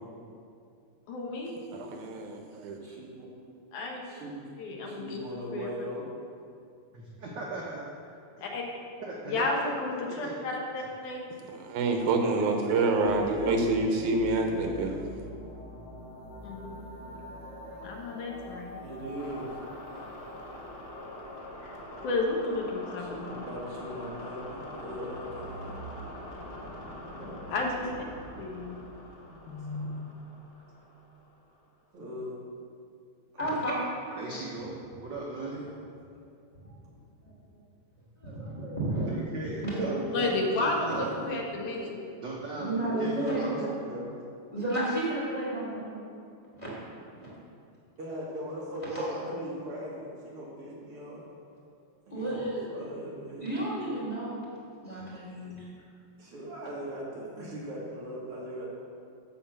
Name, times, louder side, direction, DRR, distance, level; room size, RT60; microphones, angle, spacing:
voice 1, 1.1-1.5 3.7-4.0 4.6-5.2 5.5-5.7 8.4-8.6 9.3-11.2 16.4-16.8 17.8-18.8 21.6-21.7 22.0-23.4 27.5-28.0 28.4-28.8 29.5-29.9 40.1-42.0, left 2 dB, 85° left, 0 dB, 2.7 m, -32 dB
voice 2, 1.7-2.8 11.5-15.1, right 3 dB, 85° right, 3 dB, 2.4 m, -27 dB
voice 3, 2.8-3.3 4.0-4.5 4.8-6.1 18.8-19.6 23.0-25.8 27.2-27.4 29.3-30.0 31.9-32.3 33.3-33.5 39.7-41.0 42.8-44.2 48.0-51.3 52.1-53.5 56.2-58.7, equal, 50° right, -5 dB, 2.5 m, -39 dB
voice 4, 6.9-7.9 8.4-8.5 9.0-9.7 10.1-10.3 10.8-10.9 34.1-35.7 39.1-40.3 40.6-41.1 42.2-43.2, right 3 dB, 65° right, -3 dB, 1.1 m, -38 dB
sound 1, 13.1-31.5, left 1 dB, 70° left, 0.5 m, -44 dB
voice 5, 33.4-33.7 34.2-34.3 36.6-36.7 38.2-39.1 39.6-40.0 40.9-41.1 41.7-41.8 42.6-43.7 44.5-46.1 46.6-46.7 47.1-47.2 52.1-52.7 53.4-54.4 54.8-55.5, right 1 dB, 15° left, -8 dB, 2.6 m, -32 dB
11.5 x 4.5 x 7.4 m, 2.4 s
omnidirectional pair, 3.4 m